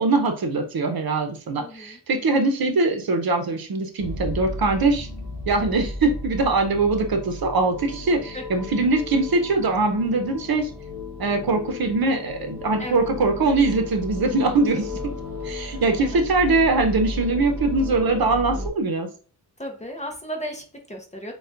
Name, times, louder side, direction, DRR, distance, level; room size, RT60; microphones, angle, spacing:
voice 1, 0.0-5.1 5.5-10.7 11.2-14.9 15.4-19.1, right 3 dB, 60° right, 5 dB, 0.8 m, -22 dB
voice 2, 1.5-2.0 8.3-8.4 12.8-12.9 14.7-14.8 15.6-16.2 19.6-21.3, equal, 15° left, 2 dB, 0.8 m, -35 dB
sound 1, 4.0-18.7, left 2 dB, 5° right, 1.9 m, -34 dB
6.7 x 2.4 x 2.5 m, 0.40 s
wide cardioid pair, 120°, 41 cm